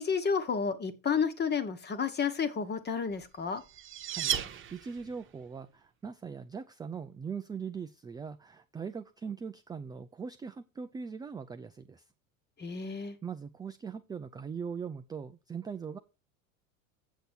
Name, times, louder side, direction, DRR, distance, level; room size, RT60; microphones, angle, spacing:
voice 1, 0.0-3.6 12.6-13.2, left 6 dB, 25° left, 1.3 m, -31 dB
sound 1, 3.2-5.3, right 10 dB, 30° right, 1.1 m, -35 dB
voice 2, 4.1-12.0 12.8-16.0, right 6 dB, 10° right, 0.4 m, -41 dB
8.2 x 6.7 x 4.5 m
hypercardioid pair, 80°, 40 cm